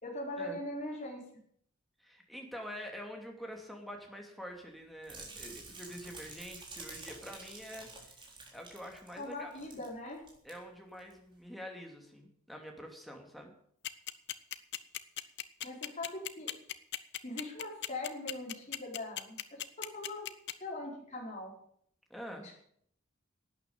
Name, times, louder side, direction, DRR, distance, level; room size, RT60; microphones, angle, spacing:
voice 1, 0.0-1.2 9.2-10.2 15.6-16.5 17.2-20.3 20.6-21.5 22.4-22.5, left 1 dB, 35° left, -3 dB, 4.7 m, -41 dB
voice 2, 2.0-7.9 8.5-9.5 10.4-13.5 22.1-22.5, equal, ahead, 1 dB, 2.7 m, -46 dB
sound 1, 5.0-9.9 10.2-10.5 11.0-11.1, right 3 dB, 25° right, 3.9 m, -49 dB
sound 2, 13.8-20.5, left 13 dB, 55° left, 0.8 m, -36 dB
12.0 x 9.3 x 8.7 m, 0.67 s
head